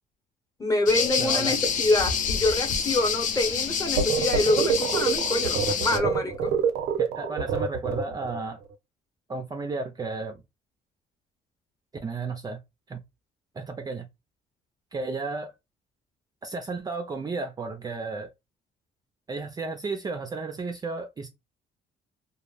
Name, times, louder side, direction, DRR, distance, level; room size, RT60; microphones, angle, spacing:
voice 1, 0.6-6.6, left 2 dB, 20° left, 0.8 m, -26 dB
sound 1, 0.9-6.0, left 6 dB, 50° left, 0.5 m, -27 dB
voice 2, 1.2-1.6 7.0-8.6 9.3-10.4 12.0-12.6 12.9-13.0 13.6-14.0 14.9-15.5 16.4-18.3 19.3-21.3, right 4 dB, 25° right, 0.4 m, -33 dB
sound 2, 4.0-8.4, right 6 dB, 85° right, 0.6 m, -26 dB
2.2 x 2.0 x 3.2 m
cardioid pair, 110°, 17 cm